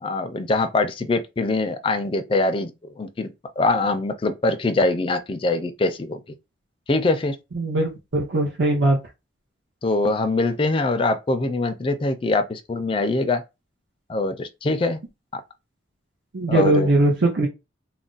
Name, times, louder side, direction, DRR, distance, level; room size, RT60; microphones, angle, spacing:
voice 1, 0.0-2.7 3.0-6.2 6.9-7.4 9.8-13.4 14.1-15.0 15.3-15.4 16.5-16.9, left 2 dB, 30° left, 0.3 m, -23 dB
voice 2, 7.5-9.0 16.3-17.5, right 2 dB, 75° right, 0.7 m, -20 dB
2.4 x 2.1 x 3.8 m
head